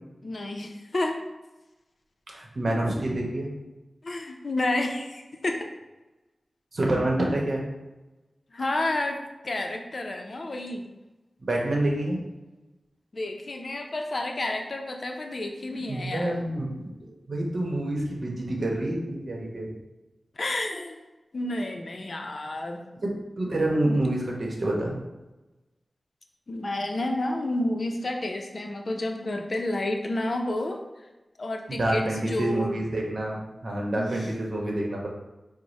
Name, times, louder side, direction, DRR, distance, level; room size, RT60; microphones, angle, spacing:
voice 1, 0.2-1.2 4.0-5.7 8.5-10.9 13.1-16.3 20.4-21.0 21.3-22.8 26.5-30.8 31.4-32.8 33.9-34.3, left 1 dB, 55° left, 3 dB, 0.5 m, -30 dB
voice 2, 2.3-3.5 6.7-7.7 11.5-12.2 15.7-19.7 23.0-23.1 23.4-25.0 31.7-35.1, right 1 dB, 60° right, -2 dB, 0.9 m, -27 dB
4.7 x 2.1 x 4.0 m, 1.1 s
wide cardioid pair, 75°, 0 cm